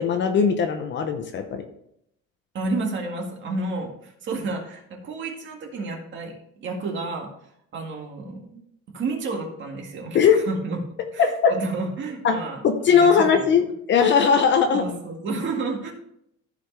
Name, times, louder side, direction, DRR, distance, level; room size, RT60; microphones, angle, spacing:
voice 1, 0.0-1.6 10.1-10.4 11.2-11.5 12.2-12.3 12.6-13.6 13.9-14.8, left 6 dB, 40° left, 6 dB, 0.7 m, -19 dB
voice 2, 2.5-7.3 7.7-8.6 8.9-10.8 11.1-13.6 14.7-15.9, right 3 dB, 40° right, 1 dB, 1.9 m, -31 dB
14.0 x 5.0 x 3.3 m, 0.75 s
cardioid pair, 165°, 29 cm